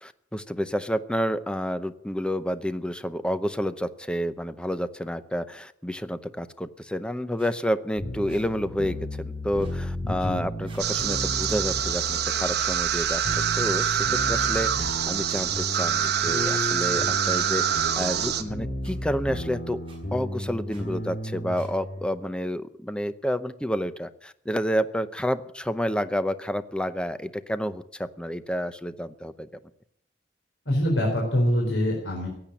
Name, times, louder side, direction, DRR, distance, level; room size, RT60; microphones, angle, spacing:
voice 1, 0.0-19.8 20.1-29.5, equal, 5° left, 12 dB, 0.7 m, -29 dB
sound 1, 7.4-7.5 8.2-8.5 9.5-9.8 10.6-10.9 12.0-12.3 13.2-13.4 14.3-14.5 15.3-15.4 16.3-16.5 17.0-17.1 18.1-18.3 18.8-18.9 19.8-20.0 20.7-20.8 21.5-21.7, right 2 dB, 30° right, 5.6 m, -51 dB
sound 2, 8.0-22.1, left 1 dB, 55° left, 5.5 m, -34 dB
voice 2, 10.0-10.4 30.7-32.3, equal, 80° left, -1 dB, 4.2 m, -24 dB
sound 3, 10.8-18.4, right 9 dB, 60° right, 1.2 m, -25 dB
16.0 x 8.8 x 8.8 m, 0.71 s
head